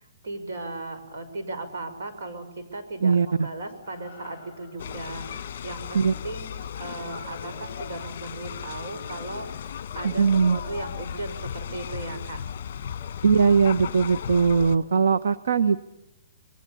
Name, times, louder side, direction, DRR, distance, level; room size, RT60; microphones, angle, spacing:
voice 1, 0.0-12.4, right 2 dB, 60° right, 8 dB, 6.1 m, -37 dB
voice 2, 3.0-3.5 5.9-6.1 10.0-10.6 13.2-15.8, right 5 dB, 85° right, 13 dB, 1.0 m, -20 dB
sound 1, 3.8-8.3, left 3 dB, 10° right, 7.8 m, -54 dB
sound 2, 4.8-14.8, left 8 dB, 45° left, 1.5 m, -36 dB
28.0 x 22.5 x 7.1 m, 0.87 s
hypercardioid pair, 175°, 0 cm